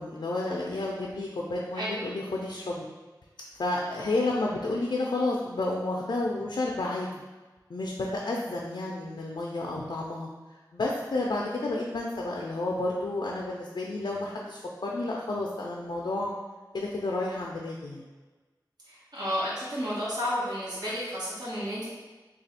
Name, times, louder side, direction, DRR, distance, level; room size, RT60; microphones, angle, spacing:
voice 1, 0.0-2.9 3.6-7.1 7.7-10.3 10.7-16.3 16.7-18.0, left 2 dB, 75° left, -2 dB, 0.4 m, -31 dB
voice 2, 18.9-21.9, equal, 60° right, -10 dB, 1.4 m, -32 dB
3.3 x 2.3 x 4.1 m, 1.3 s
wide cardioid pair, 45°, 8 cm